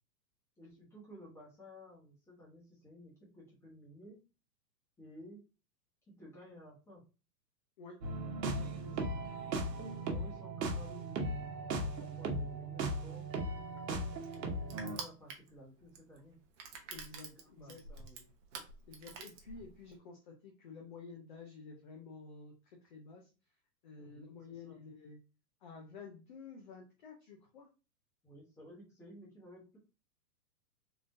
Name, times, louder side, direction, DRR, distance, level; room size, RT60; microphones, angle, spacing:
voice 1, 0.6-4.2 5.0-5.4 6.1-7.0 9.7-13.3 14.1-16.4 17.2-18.3 24.0-24.8 28.2-29.8, equal, 5° left, -5 dB, 0.9 m, -55 dB
sound 1, 8.0-15.0, right 2 dB, 75° right, 1.1 m, -37 dB
voice 2, 8.6-9.0 16.9-17.8 18.9-23.3 23.8-25.2 25.6-27.7, left 4 dB, 30° left, 1 dB, 0.5 m, -51 dB
Crushing, 13.2-20.0, right 5 dB, 45° right, 0.8 m, -49 dB
3.7 x 2.4 x 2.6 m, 0.32 s
hypercardioid pair, 150°, 49 cm